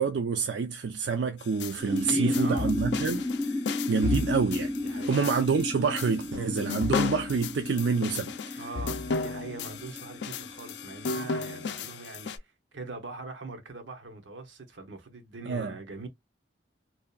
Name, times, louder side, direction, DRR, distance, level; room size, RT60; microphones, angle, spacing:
voice 1, 0.0-3.5 3.9-4.7 5.1-8.6 15.5-15.7, right 5 dB, 70° right, 0.4 m, -27 dB
sound 1, 1.4-12.4, left 5 dB, 70° left, 0.4 m, -34 dB
voice 2, 1.7-2.7 4.8-5.3 8.5-12.5 12.7-16.1, right 3 dB, 90° right, 0.8 m, -41 dB
sound 2, 1.8-11.6, left 2 dB, 5° left, 0.3 m, -33 dB
2.7 x 2.2 x 2.3 m
head